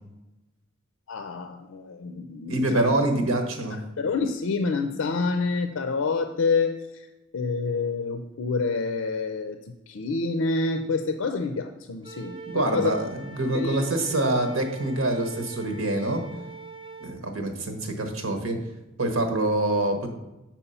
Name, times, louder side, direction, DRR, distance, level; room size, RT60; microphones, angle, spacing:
voice 1, 1.1-2.9 4.0-7.1 7.3-9.6 9.9-13.0 13.5-13.8, left 4 dB, 75° left, 7 dB, 0.5 m, -27 dB
voice 2, 2.5-3.8 12.4-16.2 17.0-18.6 19.0-20.1, right 2 dB, 85° right, 5 dB, 1.2 m, -25 dB
Wind instrument woodwind instrument, 12.0-17.2, right 3 dB, 25° right, 0.6 m, -43 dB
7.0 x 4.5 x 5.5 m, 0.98 s
head